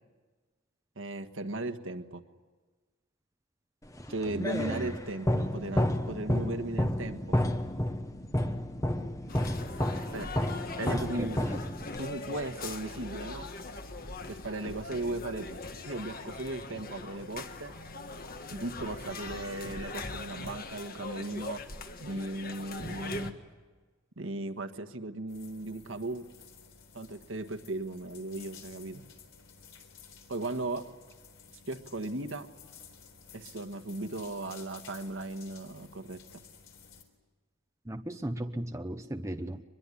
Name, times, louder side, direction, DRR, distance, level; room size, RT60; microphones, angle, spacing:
voice 1, 0.9-2.2 4.1-7.4 10.1-10.3 10.7-11.4 12.0-13.5 14.3-15.6 15.9-17.7 18.5-21.6 22.0-23.4 24.2-26.2 26.9-29.0 30.3-30.9 31.7-32.5 33.3-36.4, right 2 dB, 65° right, 6 dB, 1.6 m, -37 dB
sound 1, 4.0-12.1, left 1 dB, 15° left, 1.0 m, -31 dB
voice 2, 4.3-4.9 9.9-10.0 11.2-11.6 37.9-39.6, right 1 dB, 15° right, 6 dB, 0.8 m, -37 dB
sound 2, 9.3-23.3, left 3 dB, 45° left, 1.5 m, -41 dB
sound 3, 25.3-37.0, left 6 dB, 65° left, 3.9 m, -54 dB
24.5 x 21.5 x 9.9 m, 1.4 s
head